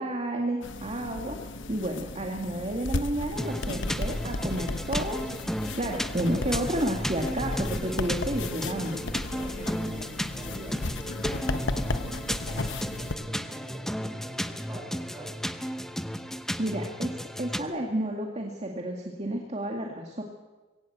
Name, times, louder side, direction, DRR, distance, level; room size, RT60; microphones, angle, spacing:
voice 1, 0.0-1.4 1.7-5.3 5.7-9.1 16.6-20.2, right 1 dB, 35° right, 1 dB, 2.1 m, -31 dB
sound 1, 0.6-13.1, left 2 dB, 60° left, 1.1 m, -35 dB
sound 2, 3.3-17.6, equal, ahead, 1.0 m, -34 dB
voice 2, 9.2-15.4, right 1 dB, 15° right, 1 dB, 5.8 m, -45 dB
21.5 x 17.5 x 8.0 m, 1.2 s
head